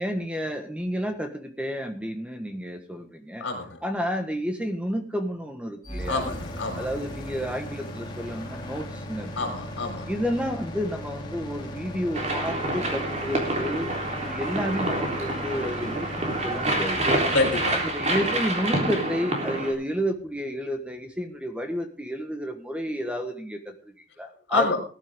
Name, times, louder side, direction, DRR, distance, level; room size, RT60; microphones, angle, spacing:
voice 1, 0.0-3.4 3.8-6.2 6.7-9.5 10.1-13.9 14.2-17.3 17.8-24.7, equal, 5° right, 5 dB, 1.4 m, -31 dB
voice 2, 3.4-3.8 6.1-6.9 9.4-10.1 17.3-17.8 24.5-24.8, left 3 dB, 70° left, 4 dB, 4.7 m, -27 dB
sound 1, 5.8-19.8, equal, 25° left, 2.9 m, -38 dB
sound 2, 12.1-19.7, right 1 dB, 35° right, 3.5 m, -27 dB
19.0 x 11.0 x 3.7 m, 0.39 s
head